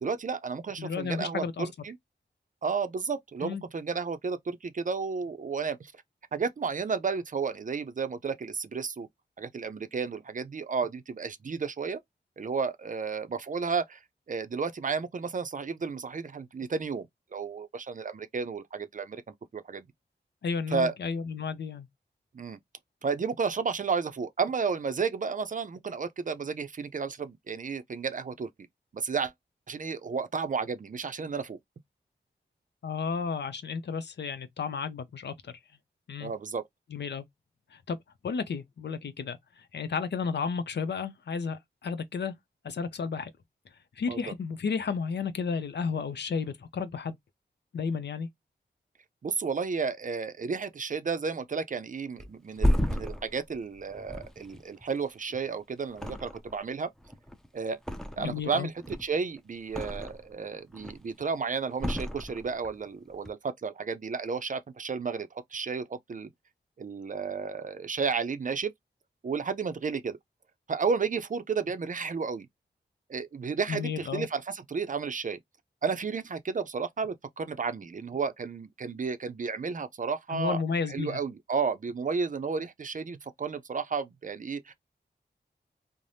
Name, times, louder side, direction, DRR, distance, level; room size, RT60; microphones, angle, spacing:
voice 1, 0.0-2.0 2.6-5.9 6.3-9.1 9.4-12.0 12.4-14.0 14.3-17.1 17.3-19.9 20.7-20.9 22.3-22.6 23.0-28.5 28.9-29.3 29.7-31.6 36.2-36.6 44.1-44.2 49.2-56.9 57.5-57.8 58.2-66.3 66.8-68.7 69.2-70.2 70.7-72.5 73.1-75.4 75.8-80.6 80.9-84.7, right 5 dB, 45° right, 0.5 m, -32 dB
voice 2, 0.8-1.7 3.4-3.6 20.4-21.9 32.8-35.5 36.1-36.3 36.9-37.2 37.7-38.0 38.2-42.3 42.6-43.3 44.0-47.2 47.7-48.3 58.2-58.7 73.7-74.3 80.3-81.2, left 5 dB, 70° left, 0.5 m, -32 dB
Thump thud, 52.2-55.5 55.9-56.7 57.0-58.5 58.8-60.3 60.7-61.2 61.8-62.8 63.1-63.3, equal, 5° left, 0.5 m, -32 dB
3.2 x 2.0 x 2.6 m
cardioid pair, 55°, 18 cm